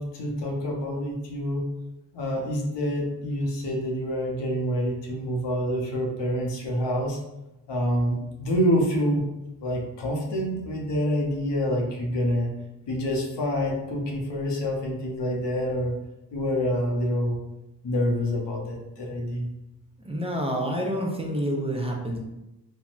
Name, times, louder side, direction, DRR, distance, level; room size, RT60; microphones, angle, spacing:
voice 1, 0.0-1.7 2.1-7.2 7.7-9.3 9.6-12.5 12.9-16.0 16.3-17.4 17.8-19.5, equal, 80° left, 0 dB, 0.7 m, -27 dB
voice 2, 20.0-22.2, equal, 15° right, -1 dB, 0.6 m, -28 dB
3.4 x 2.1 x 2.5 m, 0.95 s
cardioid pair, 50°, 42 cm